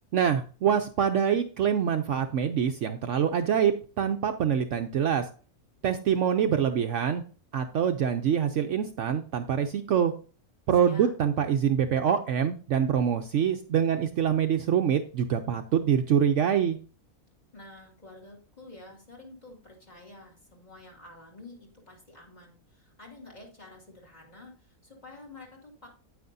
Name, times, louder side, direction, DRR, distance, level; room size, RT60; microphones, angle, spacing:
voice 1, 0.1-5.3 5.8-7.2 7.5-10.1 10.7-16.8, right 8 dB, 65° right, 7 dB, 0.9 m, -25 dB
voice 2, 10.8-11.1 17.5-25.9, left 2 dB, 30° left, 0 dB, 2.5 m, -49 dB
9.3 x 9.3 x 2.6 m, 0.38 s
omnidirectional pair, 1.5 m